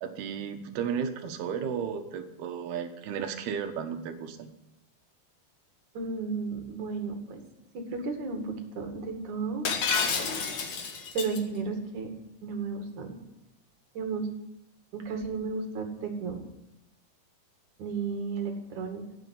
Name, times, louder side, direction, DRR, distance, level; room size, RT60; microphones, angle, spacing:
voice 1, 0.0-4.5, right 7 dB, 70° right, 7 dB, 3.3 m, -34 dB
voice 2, 5.9-7.4 7.7-9.7 11.1-12.1 12.4-13.2 13.9-14.3 14.9-16.4 17.8-19.0, right 4 dB, 50° right, 5 dB, 3.2 m, -33 dB
Shatter, 9.7-11.4, left 5 dB, 50° left, 2.5 m, -29 dB
16.5 x 9.4 x 9.5 m, 0.88 s
omnidirectional pair, 5.0 m